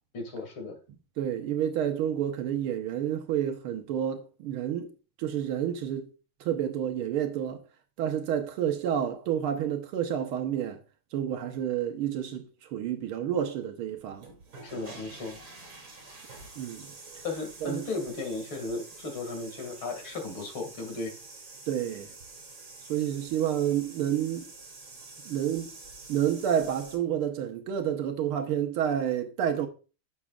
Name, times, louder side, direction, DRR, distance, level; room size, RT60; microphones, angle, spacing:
voice 1, 0.1-0.8 14.6-15.4 17.2-21.1, left 3 dB, 70° left, 2.9 m, -35 dB
voice 2, 1.2-4.9 5.2-6.1 6.4-7.6 8.0-10.8 11.1-14.3 16.6-16.9 17.6-17.9 21.7-22.1 22.9-24.5 25.3-25.7 26.1-29.7, right 9 dB, 85° right, 1.8 m, -29 dB
sound 1, 14.1-26.9, right 3 dB, 65° right, 3.4 m, -47 dB
11.0 x 7.2 x 2.4 m
omnidirectional pair, 2.3 m